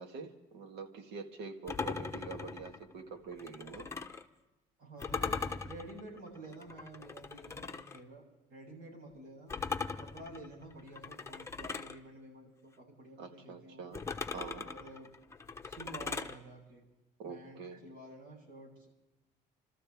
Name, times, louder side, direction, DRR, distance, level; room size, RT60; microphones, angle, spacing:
voice 1, 0.0-3.9 13.2-14.1 14.3-14.7 17.2-17.8, right 5 dB, 90° right, 5 dB, 1.9 m, -45 dB
sound 1, 1.7-4.3 5.0-8.0 9.5-12.0 13.9-16.4, left 5 dB, 15° left, 1.1 m, -40 dB
voice 2, 4.8-8.2 8.5-9.5 10.0-14.0 14.6-15.1 15.6-16.8 17.3-18.9, right 1 dB, 65° right, -1 dB, 7.8 m, -50 dB
28.5 x 13.5 x 3.6 m, 1.0 s
cardioid pair, 110°, 17 cm